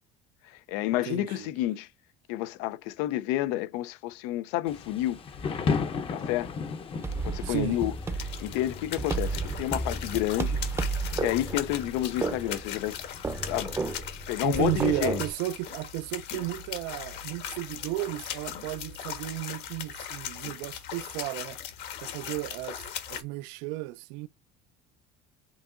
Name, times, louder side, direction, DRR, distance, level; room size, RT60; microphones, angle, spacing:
voice 1, 0.5-1.9 2.3-5.2 6.1-6.5 7.2-7.9 8.2-10.6 11.2-13.0 13.5-13.8 14.3-15.2, left 14 dB, 85° left, 0.6 m, -30 dB
voice 2, 1.1-1.5 7.4-7.8 14.4-21.6 22.0-22.8 23.1-24.3, right 17 dB, 80° right, 0.5 m, -33 dB
Thunder / Rain, 4.7-13.7, left 5 dB, 30° left, 0.7 m, -37 dB
sound 1, 7.0-23.2, left 9 dB, 60° left, 1.3 m, -39 dB
sound 2, 7.0-15.3, right 3 dB, 15° right, 0.6 m, -33 dB
7.2 x 2.8 x 2.5 m
cardioid pair, 140°, 20 cm